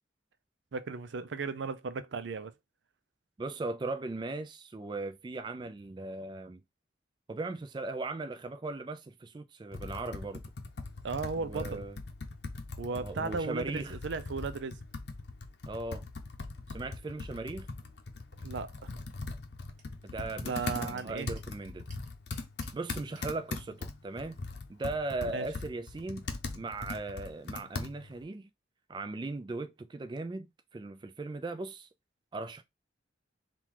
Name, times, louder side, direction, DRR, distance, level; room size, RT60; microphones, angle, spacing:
voice 1, 0.7-2.5 11.0-11.8 12.8-14.8 18.4-19.0 20.4-21.3 25.3-25.5, right 4 dB, 80° right, 0.5 m, -36 dB
voice 2, 3.4-6.6 7.3-10.4 11.4-12.0 12.9-14.0 15.7-16.0 16.7-17.7 20.0-21.8 22.7-24.4 24.7-26.3 26.5-28.5 28.9-31.9 32.3-32.6, right 3 dB, 25° right, 0.3 m, -38 dB
Computer keyboard, 9.7-28.2, left 3 dB, 65° left, 0.7 m, -41 dB
sound 1, 19.8-19.9 20.2-20.3 20.5-21.5 21.9-23.3, right 4 dB, 40° right, 1.1 m, -55 dB
3.7 x 2.4 x 4.5 m
head